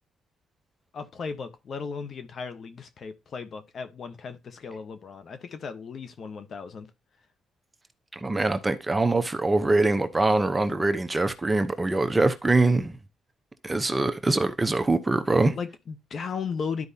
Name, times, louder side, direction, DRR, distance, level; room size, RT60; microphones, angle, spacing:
voice 1, 0.9-6.9 15.6-16.9, left 5 dB, 50° left, 1.1 m, -36 dB
voice 2, 8.1-13.0 13.6-15.6, right 2 dB, 20° right, 0.8 m, -23 dB
12.0 x 4.7 x 2.8 m
cardioid pair, 90°, 0 cm